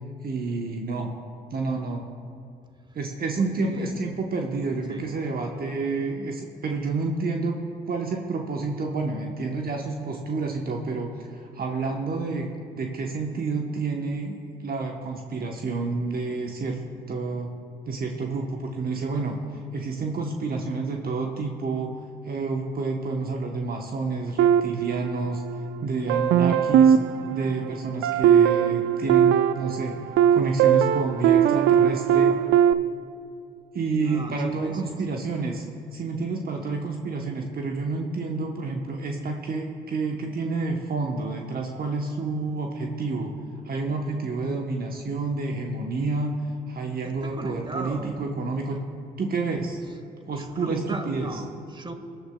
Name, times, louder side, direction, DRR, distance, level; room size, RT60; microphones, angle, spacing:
voice 1, 0.2-1.1 1.5-2.0 2.9-7.6 7.9-14.4 14.6-16.8 17.1-17.5 17.9-19.4 19.7-22.0 22.2-25.4 25.8-26.9 27.3-30.0 30.3-32.4 33.7-35.6 35.9-43.3 43.6-46.4 46.7-48.8 49.2-49.8 50.3-51.3, right 3 dB, 50° right, 1 dB, 1.0 m, -29 dB
voice 2, 3.4-4.2 4.9-5.1 33.9-35.2 47.0-48.4 49.8-49.9 50.3-51.9, right 2 dB, 25° right, 7 dB, 1.3 m, -38 dB
sound 1, 24.4-25.6 26.1-32.7, right 9 dB, 70° right, 0.4 m, -20 dB
20.5 x 10.0 x 2.3 m, 2.5 s
hypercardioid pair, 50°, 20 cm